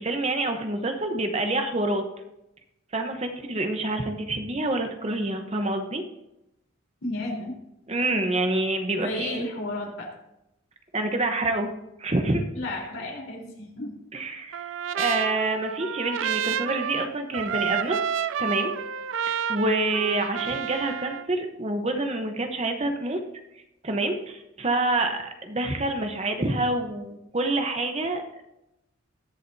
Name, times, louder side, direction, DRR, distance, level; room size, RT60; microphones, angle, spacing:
voice 1, 0.0-2.0 2.9-6.0 7.9-9.5 10.9-11.7 12.0-12.5 14.1-18.0 18.4-18.7 19.3-23.2 23.8-28.2, right 2 dB, 30° right, 5 dB, 0.9 m, -27 dB
voice 2, 7.0-7.5 9.0-10.1 12.5-13.9, left 1 dB, 80° left, -1 dB, 3.9 m, -33 dB
Trumpet, 14.5-21.3, right 8 dB, 70° right, 0.4 m, -30 dB
21.0 x 7.5 x 2.7 m, 0.89 s
head